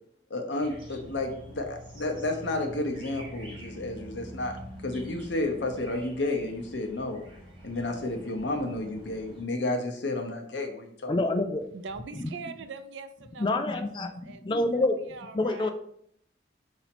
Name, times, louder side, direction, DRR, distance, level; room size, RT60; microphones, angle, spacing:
voice 1, 0.3-7.2 7.6-11.1, left 2 dB, 75° left, 3 dB, 0.8 m, -31 dB
sound 1, 0.6-9.4, equal, 25° right, 1.2 m, -45 dB
voice 2, 11.1-11.6 12.1-12.3 13.4-15.0 15.3-15.7, left 2 dB, 25° left, 7 dB, 0.3 m, -27 dB
voice 3, 11.7-14.4 14.7-15.7, right 4 dB, 80° right, 10 dB, 0.4 m, -43 dB
4.1 x 2.7 x 4.2 m, 0.70 s
head